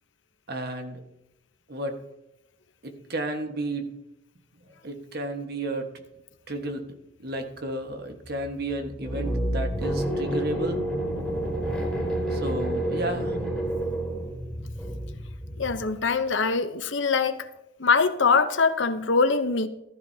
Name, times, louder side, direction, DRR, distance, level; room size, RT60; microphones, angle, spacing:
voice 1, 0.5-1.0 1.7-2.0 2.8-3.9 4.8-5.9 6.5-6.8 7.2-10.8 12.3-13.4, right 1 dB, 55° right, 1.4 m, -32 dB
sound 1, 8.2-16.1, right 1 dB, ahead, 4.5 m, -29 dB
voice 2, 15.6-17.5 17.8-19.7, left 4 dB, 70° left, 0.8 m, -23 dB
14.5 x 12.5 x 2.8 m
head